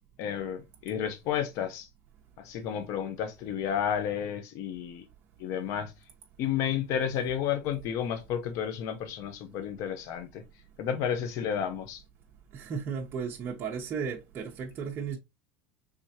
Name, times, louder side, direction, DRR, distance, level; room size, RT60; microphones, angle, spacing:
voice 1, 0.2-1.9 2.4-5.0 5.4-5.9 6.4-10.4 10.8-12.0, left 8 dB, 55° left, 0.7 m, -31 dB
voice 2, 12.5-15.2, right 6 dB, 35° right, 0.8 m, -35 dB
4.7 x 3.4 x 2.8 m
supercardioid pair, 135°, 7 cm